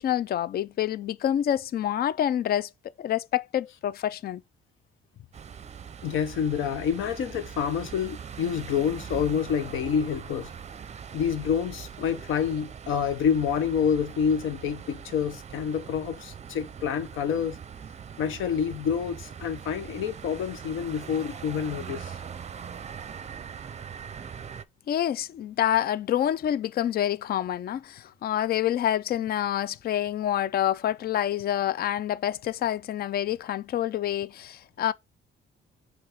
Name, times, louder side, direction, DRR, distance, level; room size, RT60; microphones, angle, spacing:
voice 1, 0.0-2.7 3.0-4.4 24.9-34.9, left 11 dB, 50° left, 0.4 m, -27 dB
sound 1, 5.3-24.6, right 7 dB, 35° right, 0.6 m, -41 dB
voice 2, 6.0-10.5 11.1-17.6 18.2-22.2, left 7 dB, 85° left, 0.9 m, -28 dB
5.6 x 3.4 x 5.0 m
cardioid pair, 90°, 20 cm